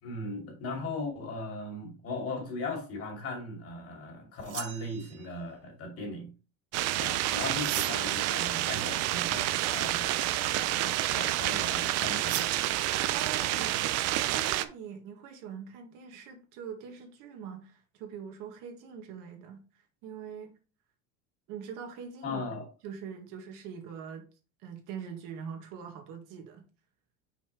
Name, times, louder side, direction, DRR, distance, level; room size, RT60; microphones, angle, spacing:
voice 1, 0.0-6.3 6.9-10.3 10.7-12.5 13.5-13.6 22.2-22.7, left 2 dB, 40° left, 2.6 m, -38 dB
sound 1, 4.4-5.4 7.5-8.2 12.3-12.7, right 13 dB, 80° right, 1.0 m, -38 dB
sound 2, 6.7-14.6, right 14 dB, 50° right, 0.5 m, -29 dB
voice 2, 13.1-19.6 20.0-20.6 21.5-22.4 22.8-24.3 24.6-26.6, right 7 dB, 65° right, 1.7 m, -43 dB
5.8 x 4.3 x 4.4 m
cardioid pair, 155°, 34 cm